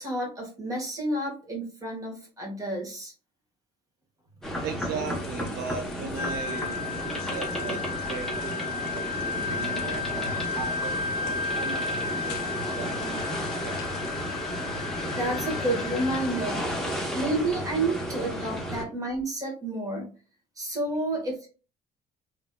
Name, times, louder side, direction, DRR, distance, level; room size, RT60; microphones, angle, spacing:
voice 1, 0.0-3.1 4.4-4.5 15.1-16.6 17.1-20.1 20.6-21.5, right 1 dB, 20° right, -1 dB, 1.5 m, -30 dB
sound 1, 4.4-18.8, equal, ahead, 0.9 m, -33 dB
voice 2, 4.6-14.1 18.7-18.8, right 6 dB, 70° right, 6 dB, 0.5 m, -39 dB
sound 2, 5.0-14.3, left 8 dB, 75° left, 0.6 m, -48 dB
Wind instrument woodwind instrument, 6.1-16.5, left 5 dB, 50° left, 0.8 m, -34 dB
3.1 x 2.8 x 2.3 m, 0.35 s
cardioid pair, 110°, 17 cm